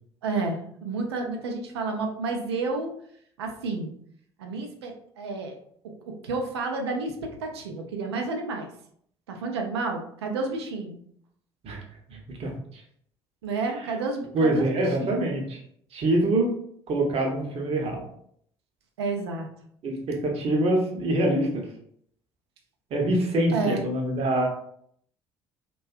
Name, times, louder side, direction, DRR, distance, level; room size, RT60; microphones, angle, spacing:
voice 1, 0.2-2.9 3.4-3.9 4.4-5.6 5.8-8.7 9.3-11.0 13.4-15.3 19.0-19.5 23.5-23.8, right 3 dB, 80° right, 3 dB, 0.4 m, -30 dB
voice 2, 12.1-12.5 14.3-15.6 15.9-16.5 16.9-18.0 19.8-21.6 22.9-24.5, right 1 dB, 50° right, 1 dB, 0.7 m, -25 dB
2.5 x 2.2 x 2.4 m, 0.66 s
figure-of-eight pair, 55°, 13 cm